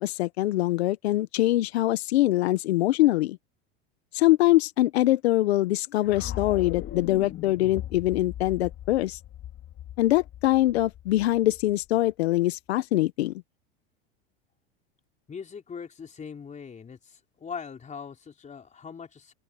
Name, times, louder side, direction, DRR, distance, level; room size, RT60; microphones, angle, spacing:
voice 1, 0.0-3.4 4.1-9.2 10.0-13.3, left 16 dB, 80° left, 1.2 m, -23 dB
sound 1, 6.0-12.1, left 12 dB, 40° left, 2.8 m, -39 dB
voice 2, 15.3-19.3, left 6 dB, 25° left, 4.3 m, -41 dB
open air
hypercardioid pair, 105°, 31 cm